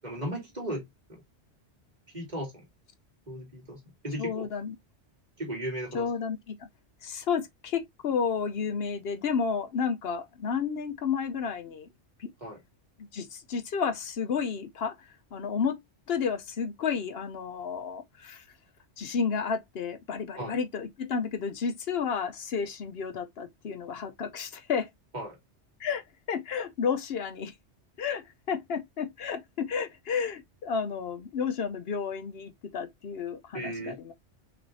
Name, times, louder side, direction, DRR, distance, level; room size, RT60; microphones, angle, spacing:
voice 1, 0.0-1.2 2.1-2.6 3.3-4.5 5.4-6.1 12.4-12.6 20.4-20.6 25.1-25.4 33.5-34.0, right 1 dB, 40° right, 2.5 m, -36 dB
voice 2, 4.2-4.8 5.9-6.7 7.0-11.9 12.2-12.3 13.1-15.8 16.1-18.4 19.0-24.9 25.8-26.0 26.3-27.5 28.0-34.1, left 6 dB, 65° left, 0.9 m, -31 dB
6.0 x 3.2 x 2.7 m
omnidirectional pair, 1.2 m